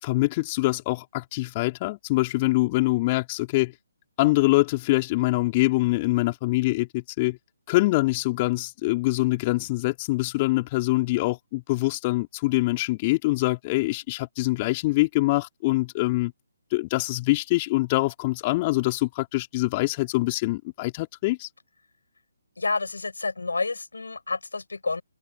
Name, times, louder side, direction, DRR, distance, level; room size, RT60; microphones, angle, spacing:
voice 1, 0.0-3.7 4.2-7.4 7.7-16.3 16.7-21.5, left 21 dB, 25° left, 3.7 m, -24 dB
voice 2, 22.6-25.0, left 3 dB, 70° left, 6.7 m, -29 dB
figure-of-eight pair, 140°, 0 cm